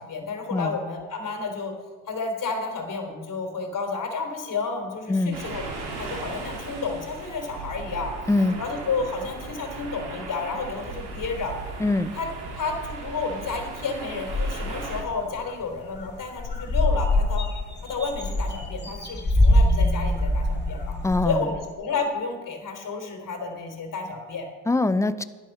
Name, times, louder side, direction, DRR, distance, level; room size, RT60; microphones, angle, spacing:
voice 1, 0.0-1.7 2.1-8.1 8.6-11.6 12.1-12.3 12.5-17.5 17.8-21.0 21.3-24.5, left 4 dB, 50° left, 3 dB, 3.6 m, -31 dB
sound 1, 5.3-15.0, right 3 dB, 70° right, 3.1 m, -37 dB
voice 2, 8.3-8.6 11.8-12.1 21.0-21.4 24.7-25.2, left 2 dB, 5° left, 14 dB, 0.6 m, -23 dB
sound 2, 14.3-15.0 15.5-15.6 15.8-16.1 16.4-21.4, left 1 dB, 25° left, 2.8 m, -23 dB
11.5 x 11.0 x 5.6 m, 1.4 s
supercardioid pair, 70°, 41 cm